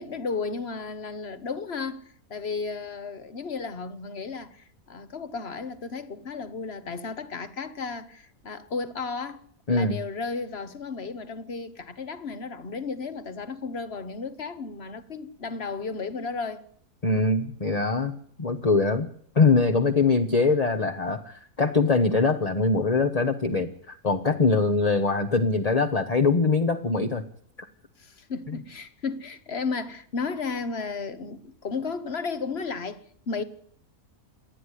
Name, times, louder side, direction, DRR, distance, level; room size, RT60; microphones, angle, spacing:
voice 1, 0.0-2.0 2.3-9.4 9.7-16.6 28.0-33.4, left 4 dB, 45° left, 1.5 m, -34 dB
voice 2, 17.0-19.1 19.3-27.2 27.6-27.7 28.5-28.6, left 3 dB, 30° left, 1.0 m, -23 dB
27.5 x 9.9 x 9.9 m
omnidirectional pair, 1.6 m